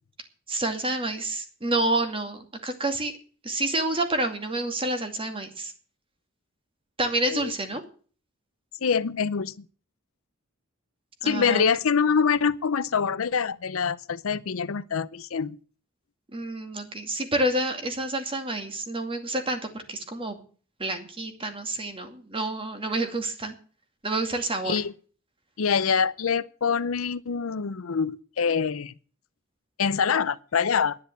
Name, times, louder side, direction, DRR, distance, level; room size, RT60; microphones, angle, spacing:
voice 1, 0.5-3.1 3.4-5.7 7.0-7.8 11.2-11.6 16.3-20.4 20.8-23.5 24.0-24.7, right 1 dB, 25° right, 2.3 m, -28 dB
voice 2, 8.8-9.5 11.2-15.6 24.7-24.9 25.6-28.9 29.8-31.0, left 6 dB, 75° left, 0.6 m, -25 dB
11.0 x 10.0 x 7.9 m
head